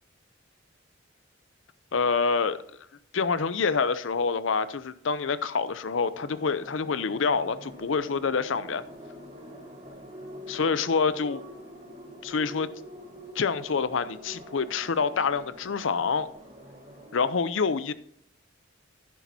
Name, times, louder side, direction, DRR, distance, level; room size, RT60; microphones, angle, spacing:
voice 1, 1.9-2.6 3.1-8.8 10.5-11.4 12.2-12.7 13.3-16.3 17.1-17.9, left 5 dB, 80° left, 0.6 m, -26 dB
sound 1, 6.1-17.2, equal, 35° right, 4.9 m, -45 dB
11.5 x 10.0 x 2.8 m
head